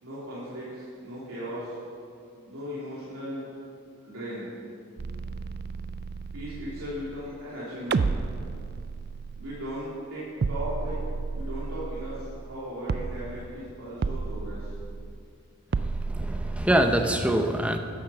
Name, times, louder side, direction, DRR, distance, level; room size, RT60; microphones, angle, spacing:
voice 1, 0.0-1.8 2.4-3.5 4.0-4.5 6.3-8.1 9.3-11.0 11.3-14.8, equal, 85° right, -9 dB, 3.4 m, -37 dB
sound 1, 5.0-7.6 7.9-10.0 10.4-12.6 12.9-13.6 14.0-15.3 15.7-16.7, right 4 dB, 45° right, 0.3 m, -32 dB
voice 2, 15.8-17.8, right 1 dB, 5° right, 5 dB, 0.6 m, -25 dB
13.0 x 9.9 x 5.9 m, 2.3 s
head